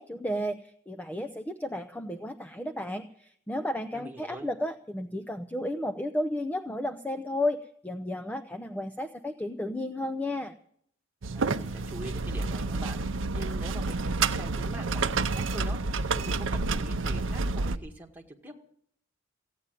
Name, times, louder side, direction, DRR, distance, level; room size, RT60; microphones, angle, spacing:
voice 1, 0.0-10.5, left 1 dB, 10° left, 7 dB, 0.6 m, -33 dB
voice 2, 3.9-4.5 11.3-13.0 13.3-15.8 16.1-18.6, right 1 dB, 10° right, 1 dB, 1.9 m, -44 dB
sound 1, 11.2-17.8, right 3 dB, 70° right, 0.7 m, -29 dB
16.0 x 9.1 x 9.0 m, 0.65 s
head